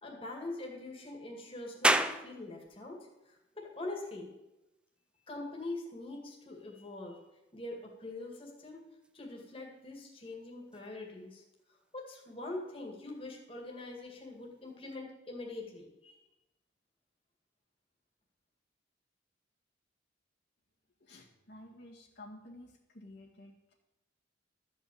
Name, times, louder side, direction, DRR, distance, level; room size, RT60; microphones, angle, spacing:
voice 1, 0.0-4.3 5.3-7.2 7.5-8.8 9.1-11.4 11.9-16.2, left 2 dB, 30° left, 0 dB, 2.2 m, -43 dB
sound 1, 1.8-15.0, right 1 dB, 5° right, 0.4 m, -40 dB
voice 2, 21.0-23.7, left 1 dB, 60° left, -2 dB, 2.0 m, -52 dB
13.0 x 5.5 x 8.5 m, 0.97 s
head